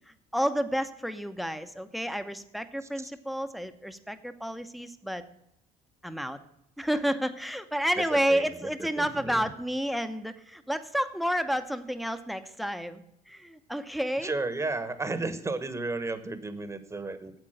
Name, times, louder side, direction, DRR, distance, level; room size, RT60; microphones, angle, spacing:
voice 1, 0.1-5.2 6.0-6.4 6.8-14.3, equal, ahead, 10 dB, 0.8 m, -30 dB
voice 2, 8.0-8.7 9.0-9.4 14.2-17.3, right 3 dB, 15° right, 12 dB, 1.1 m, -33 dB
8.8 x 8.1 x 6.4 m, 0.79 s
cardioid pair, 110°, 17 cm